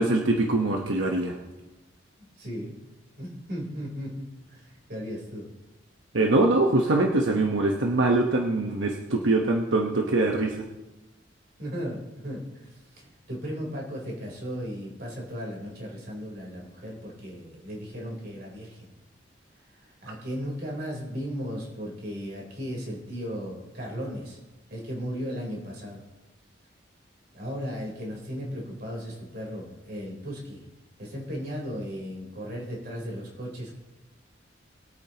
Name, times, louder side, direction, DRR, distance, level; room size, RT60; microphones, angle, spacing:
voice 1, 0.0-1.3 6.1-10.6, right 2 dB, 90° right, 1 dB, 1.1 m, -23 dB
voice 2, 2.2-2.7 3.2-5.5 11.6-18.9 19.7-24.4 24.7-26.0 27.3-30.6 31.0-33.8, equal, 55° right, -2 dB, 3.8 m, -36 dB
21.0 x 8.8 x 2.9 m, 1.0 s
head